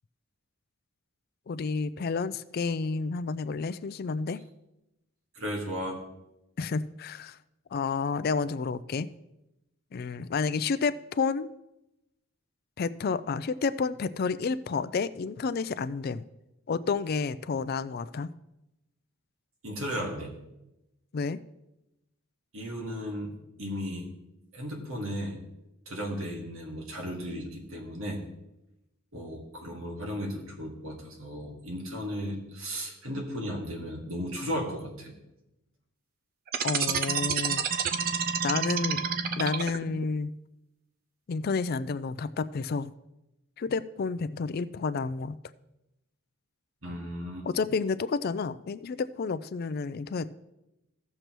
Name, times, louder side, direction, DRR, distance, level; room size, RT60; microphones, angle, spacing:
voice 1, 1.5-4.4 6.6-7.4 7.7-9.1 9.9-11.5 12.8-16.2 16.7-18.3 21.1-21.4 36.6-37.7 38.4-39.0 39.4-40.3 41.3-42.9 43.6-45.3 47.4-50.3, left 4 dB, 45° left, 13 dB, 0.4 m, -30 dB
voice 2, 5.4-6.0 19.6-20.4 22.5-23.3 23.6-24.1 24.5-25.4 25.9-28.2 29.1-35.1 46.8-47.5, equal, 75° right, 0 dB, 1.9 m, -35 dB
sound 1, 36.5-40.0, right 6 dB, 45° right, 0.5 m, -28 dB
16.0 x 6.7 x 3.0 m, 0.92 s
head